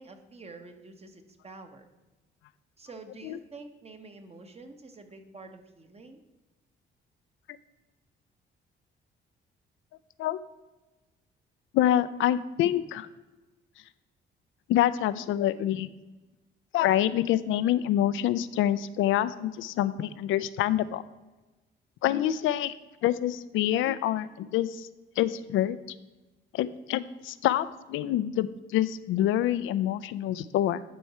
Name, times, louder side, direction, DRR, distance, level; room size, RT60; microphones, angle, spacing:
voice 1, 0.0-1.8 2.8-6.2, right 3 dB, 30° right, 6 dB, 1.1 m, -47 dB
voice 2, 11.7-13.1 14.7-15.9 16.7-21.0 22.0-22.7 23.0-24.9 25.2-25.8 26.5-30.8, left 12 dB, 85° left, 14 dB, 0.4 m, -26 dB
11.0 x 4.6 x 4.2 m, 1.1 s
cardioid pair, 90°, 20 cm